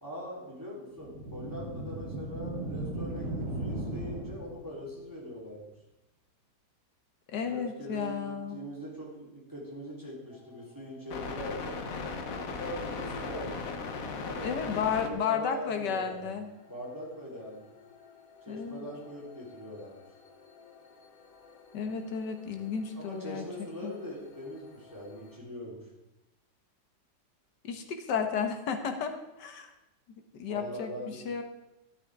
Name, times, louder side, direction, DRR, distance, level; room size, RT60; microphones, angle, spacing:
voice 1, 0.0-5.7 7.5-11.8 12.6-13.7 14.2-14.7 15.0-16.3 16.7-17.7 18.5-20.0 22.9-25.8 30.5-31.2, equal, 10° right, -6 dB, 3.7 m, -42 dB
sound 1, 0.9-4.8, right 1 dB, 50° right, 3.4 m, -36 dB
voice 2, 7.3-8.6 14.4-16.5 18.5-18.9 21.7-23.5 23.8-23.9 27.6-29.7 30.3-30.9 31.3-31.4, left 6 dB, 85° left, 6 dB, 1.8 m, -32 dB
sound 2, 10.3-25.4, left 4 dB, 60° left, 1.3 m, -42 dB
13.5 x 12.0 x 3.6 m, 0.93 s
omnidirectional pair, 1.8 m